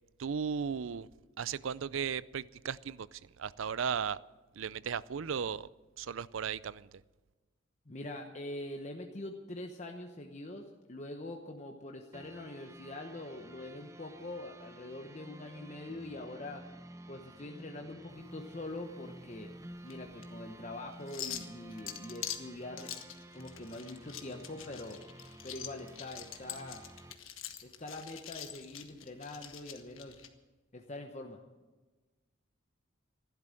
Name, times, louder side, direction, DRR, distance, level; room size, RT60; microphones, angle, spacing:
voice 1, 0.2-1.1 1.4-4.2 4.6-5.7 6.0-6.9, right 7 dB, 80° right, 19 dB, 0.5 m, -36 dB
voice 2, 7.9-16.6 17.1-19.5 19.8-22.9 23.3-25.0 25.4-26.8 27.6-30.2 30.7-31.4, left 2 dB, 35° left, 3 dB, 1.0 m, -44 dB
sound 1, 12.1-27.1, right 1 dB, 15° right, 0.7 m, -52 dB
sound 2, 18.1-30.3, left 10 dB, 85° left, 1.4 m, -46 dB
15.0 x 12.0 x 7.7 m, 1.2 s
head